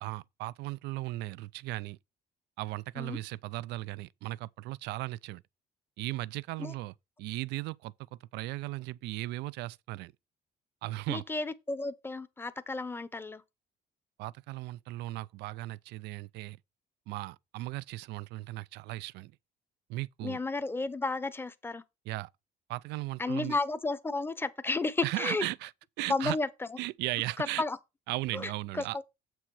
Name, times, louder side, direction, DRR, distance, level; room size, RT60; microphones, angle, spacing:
voice 1, 0.0-2.0 2.6-5.4 6.0-6.9 7.2-10.1 10.8-11.2 14.2-16.6 17.1-19.3 19.9-20.4 22.1-22.3 22.7-23.6 25.0-25.7 26.0-26.4 26.8-27.6 28.1-29.0, right 18 dB, 80° right, 0.4 m, -37 dB
voice 2, 11.1-13.4 20.2-21.8 23.2-25.5 26.1-26.8 27.4-27.8 28.3-29.0, left 3 dB, 15° left, 0.8 m, -33 dB
7.4 x 6.2 x 4.7 m
cardioid pair, 110°, 17 cm